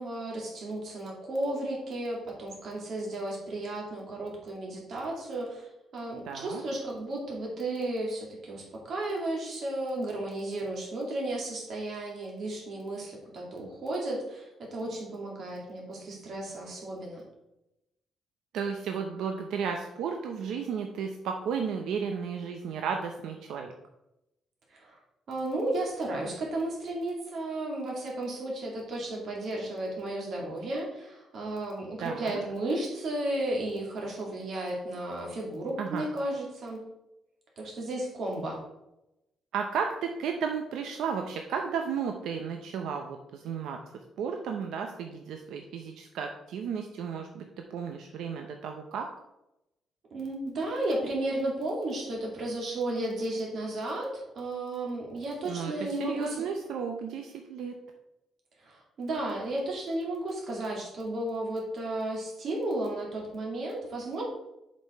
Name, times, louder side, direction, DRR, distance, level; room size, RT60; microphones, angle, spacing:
voice 1, 0.0-5.7 5.9-17.2 24.7-25.0 25.3-36.8 37.6-38.6 50.1-56.4 58.6-64.2, right 1 dB, 50° right, -1 dB, 2.4 m, -33 dB
voice 2, 6.2-6.6 18.5-23.7 32.0-32.4 35.8-36.1 39.5-43.8 44.2-47.4 47.7-49.1 55.4-57.7, right 6 dB, 85° right, 4 dB, 0.7 m, -33 dB
7.4 x 5.3 x 4.3 m, 0.90 s
cardioid pair, 160°, 0 cm